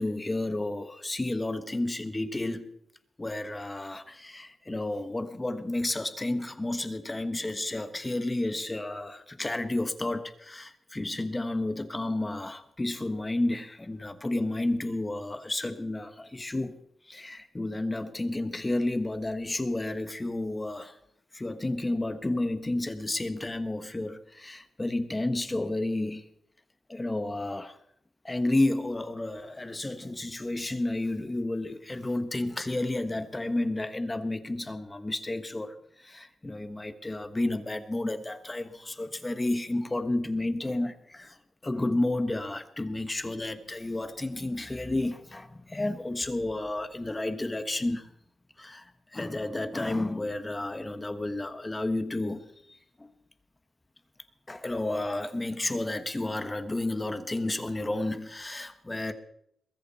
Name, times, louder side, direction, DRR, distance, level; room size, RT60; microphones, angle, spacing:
voice 1, 0.0-2.7 3.2-16.8 17.1-21.0 21.3-26.2 26.9-27.8 28.2-41.4 41.6-48.1 48.6-53.1 54.5-59.1, left 2 dB, 20° left, 11 dB, 1.3 m, -31 dB
22.0 x 14.0 x 4.2 m, 0.74 s
wide cardioid pair, 105°, 0 cm